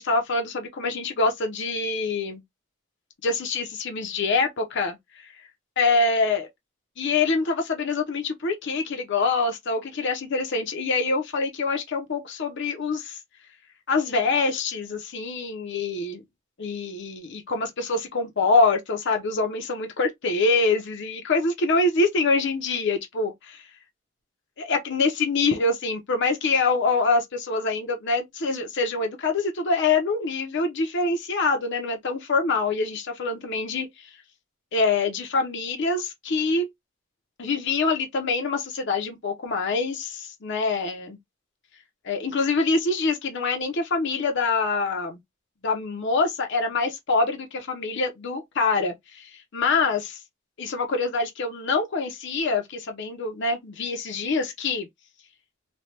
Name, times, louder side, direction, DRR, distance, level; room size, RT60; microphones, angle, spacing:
voice 1, 0.0-2.4 3.2-5.0 5.8-6.5 7.0-13.2 13.9-16.2 16.6-23.6 24.6-34.1 34.7-36.7 37.4-41.2 42.0-45.2 45.6-50.2 50.6-54.9, left 3 dB, 60° left, 0.7 m, -25 dB
3.2 x 2.2 x 2.8 m
head